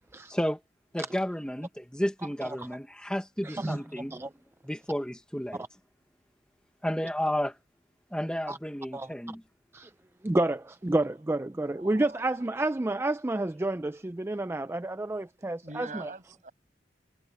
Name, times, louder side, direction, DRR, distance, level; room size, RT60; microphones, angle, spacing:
voice 1, 0.3-0.6 0.9-4.1 4.6-5.6 6.8-7.6 8.1-9.4, equal, 5° left, 1.1 m, -32 dB
voice 2, 3.4-4.3 8.5-8.6 8.9-9.1 9.7-9.9 10.2-16.1, right 2 dB, 15° right, 0.4 m, -30 dB
voice 3, 11.8-12.5 15.6-16.5, right 3 dB, 45° right, 6.0 m, -44 dB
head